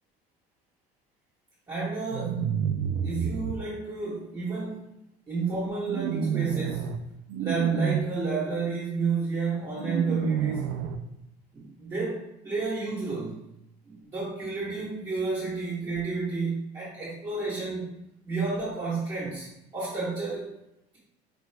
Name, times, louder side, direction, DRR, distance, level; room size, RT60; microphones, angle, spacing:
voice 1, 1.7-2.5 3.0-7.0 7.4-10.7 11.5-13.4 13.8-18.0 18.2-20.5, right 4 dB, 20° right, -8 dB, 1.0 m, -31 dB
sound 1, 2.1-3.5 5.9-7.0 7.3-8.0 9.8-11.0, right 8 dB, 75° right, 0.4 m, -29 dB
4.7 x 2.3 x 3.2 m, 0.84 s
cardioid pair, 150°, 19 cm